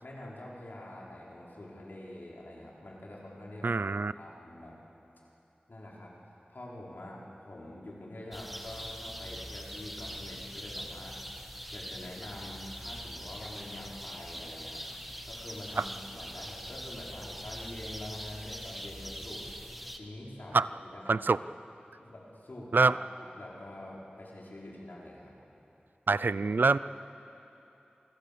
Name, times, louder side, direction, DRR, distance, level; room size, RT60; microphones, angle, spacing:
voice 1, 0.0-4.8 5.7-11.2 11.7-14.8 15.2-19.4 19.9-21.4 22.0-25.4, left 1 dB, 75° left, -4 dB, 5.0 m, -46 dB
voice 2, 3.6-4.1 15.8-15.9 20.5-20.7 21.1-21.4 22.7-23.0 26.1-26.8, right 4 dB, 80° right, 16 dB, 0.5 m, -25 dB
sound 1, 8.3-20.0, equal, ahead, 1.6 m, -42 dB
28.0 x 22.5 x 6.9 m, 2.9 s
wide cardioid pair, 50°, 3 cm